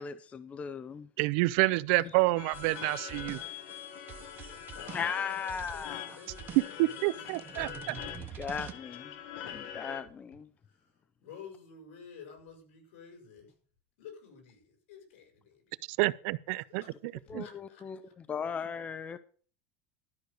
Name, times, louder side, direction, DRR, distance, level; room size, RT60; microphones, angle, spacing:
voice 1, 0.0-1.1 2.0-2.1 4.9-6.2 8.1-9.1 9.5-10.5 17.3-19.2, left 6 dB, 20° left, 0.6 m, -37 dB
voice 2, 1.2-3.4 6.8-7.9 15.9-16.8 17.3-17.4, right 21 dB, 65° right, 0.5 m, -28 dB
sound 1, 2.4-10.0, left 10 dB, 60° left, 1.2 m, -44 dB
sound 2, 2.5-8.7, right 9 dB, 30° right, 1.0 m, -47 dB
voice 3, 4.7-7.8 9.5-9.6 10.6-13.5 14.0-16.0 16.7-16.9 17.3-18.1, left 6 dB, 80° left, 5.5 m, -52 dB
12.5 x 6.4 x 6.6 m
supercardioid pair, 145°, 7 cm